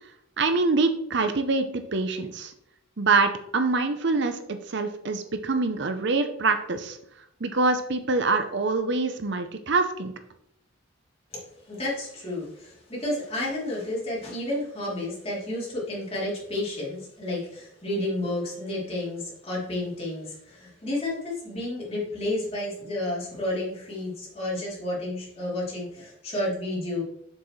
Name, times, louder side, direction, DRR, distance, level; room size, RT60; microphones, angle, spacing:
voice 1, 0.4-2.5 3.0-7.0 7.4-10.1, right 3 dB, 55° right, 8 dB, 0.7 m, -25 dB
voice 2, 11.3-27.0, left 1 dB, 30° left, -6 dB, 3.2 m, -31 dB
7.6 x 7.2 x 3.2 m, 0.75 s
head